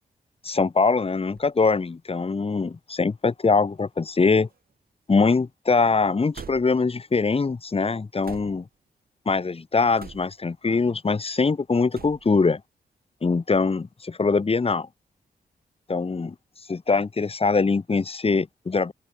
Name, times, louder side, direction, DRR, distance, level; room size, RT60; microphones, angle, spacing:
voice 1, 0.4-4.5 5.1-8.7 9.2-12.6 13.2-14.9 15.9-16.3 16.7-18.9, left 4 dB, 35° left, 1.7 m, -23 dB
sound 1, 1.3-1.5 2.4-2.5 3.7-4.8 6.3-6.9 8.2-8.8 10.0-10.5 11.9-12.4, right 6 dB, 60° right, 2.9 m, -45 dB
open air
cardioid pair, 75°, 17 cm